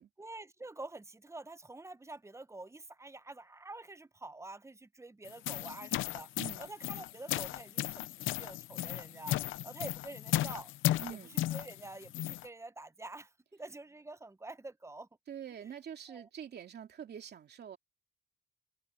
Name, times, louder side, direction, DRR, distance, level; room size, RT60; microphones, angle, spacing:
voice 1, 0.2-6.3 6.6-9.4 9.6-10.7 11.1-15.1 16.1-16.3, right 2 dB, 15° right, 0.9 m, -47 dB
sound 1, 5.2-12.5, left 15 dB, 85° left, 0.7 m, -35 dB
voice 2, 6.4-6.7 11.0-11.4 15.3-17.8, right 9 dB, 55° right, 2.7 m, -45 dB
cardioid pair, 90°, 20 cm